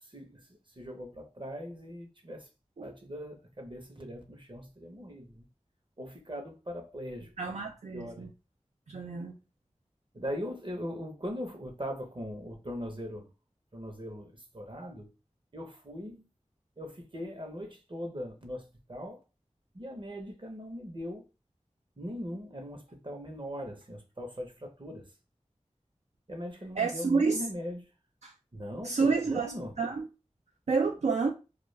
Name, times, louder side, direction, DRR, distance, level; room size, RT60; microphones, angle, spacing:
voice 1, 0.0-2.5 2.8-5.5 6.0-7.4 7.6-8.3 10.1-13.3 13.7-15.1 15.5-16.3 16.8-19.2 19.7-21.3 22.0-25.1 26.3-27.9 28.5-29.7, equal, 40° right, 0.8 m, -40 dB
voice 2, 7.4-8.3 8.9-9.3 26.8-27.4 28.2-28.3 28.8-30.1 30.7-31.3, right 4 dB, 65° right, 0.4 m, -29 dB
2.4 x 2.2 x 3.1 m
wide cardioid pair, 40°, 12 cm